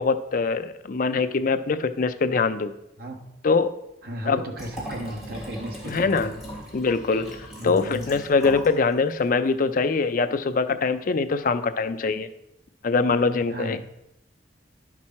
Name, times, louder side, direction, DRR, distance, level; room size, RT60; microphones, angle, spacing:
voice 1, 0.0-2.7 3.4-3.7 4.3-4.4 5.8-6.3 6.7-7.4 7.6-12.3 12.8-13.8, left 4 dB, 50° left, 10 dB, 0.5 m, -23 dB
voice 2, 3.0-3.3 4.0-6.3 7.6-8.0 13.5-13.8, right 1 dB, 55° right, 2 dB, 1.2 m, -35 dB
Liquid, 4.5-8.8 9.1-9.2, equal, ahead, 3.0 m, -39 dB
10.5 x 6.1 x 4.3 m, 0.83 s
head